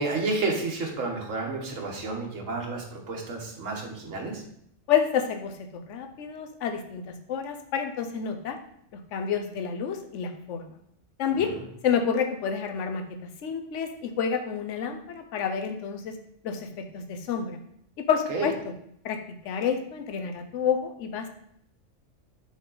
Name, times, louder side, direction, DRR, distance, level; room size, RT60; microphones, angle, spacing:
voice 1, 0.0-4.4 11.3-11.6 18.3-18.5, right 3 dB, 85° right, 1 dB, 1.6 m, -31 dB
voice 2, 4.9-5.5 5.9-7.0 7.3-8.6 8.9-10.7 11.2-11.5 11.8-13.0 13.4-16.2 16.4-16.7 16.9-17.6 18.1-18.5 19.0-19.2 19.4-21.3, left 7 dB, 75° left, 6 dB, 1.0 m, -28 dB
7.2 x 3.9 x 3.9 m, 0.72 s
omnidirectional pair, 1.3 m